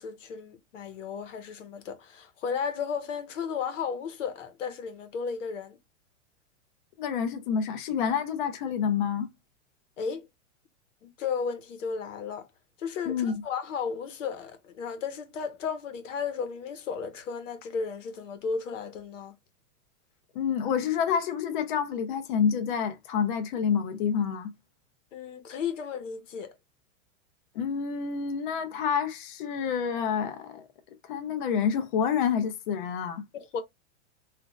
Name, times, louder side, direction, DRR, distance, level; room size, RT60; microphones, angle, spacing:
voice 1, 0.0-5.8 10.0-10.2 11.0-12.5 12.8-19.3 25.1-26.5 33.3-33.6, left 6 dB, 85° left, 0.9 m, -34 dB
voice 2, 7.0-9.3 13.1-13.4 20.3-24.5 27.5-30.6 31.1-33.2, left 7 dB, 45° left, 0.5 m, -28 dB
3.0 x 2.4 x 2.3 m
supercardioid pair, 165°, 37 cm